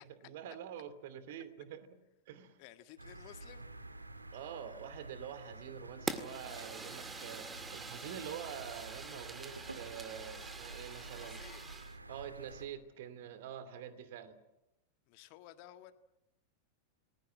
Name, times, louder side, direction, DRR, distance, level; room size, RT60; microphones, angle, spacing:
voice 1, 0.2-2.0 2.3-2.6 4.3-11.4 12.1-14.4, right 9 dB, 55° right, 13 dB, 2.6 m, -46 dB
voice 2, 2.6-3.7 11.0-11.6 15.1-15.9, left 13 dB, 45° left, 9 dB, 1.7 m, -55 dB
sound 1, 3.0-12.7, right 2 dB, 80° right, 2.0 m, -50 dB
Fire, 6.1-12.0, right 4 dB, 15° right, 2.0 m, -45 dB
29.0 x 20.5 x 8.8 m, 0.95 s
figure-of-eight pair, 90°, 0 cm